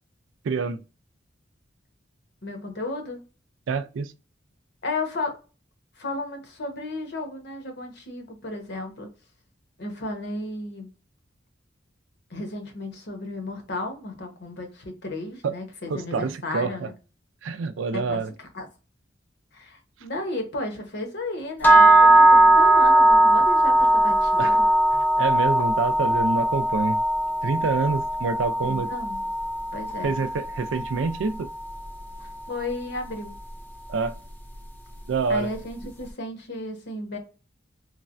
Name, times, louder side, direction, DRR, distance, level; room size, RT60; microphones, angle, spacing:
voice 1, 0.4-0.8 3.7-4.1 15.9-16.9 17.4-18.3 24.4-24.6 24.9-27.0 27.4-28.9 30.0-31.5 33.9-34.1 35.1-35.5, right 4 dB, 90° right, 0.4 m, -27 dB
voice 2, 2.4-3.2 4.8-5.3 6.0-9.1 9.8-10.9 12.3-16.9 17.9-18.7 19.5-24.7 28.6-29.2 29.7-30.2 32.2-33.4 35.3-37.2, left 2 dB, 65° left, 0.9 m, -34 dB
sound 1, 21.6-31.7, right 1 dB, 10° left, 0.5 m, -19 dB
3.2 x 2.0 x 2.5 m
head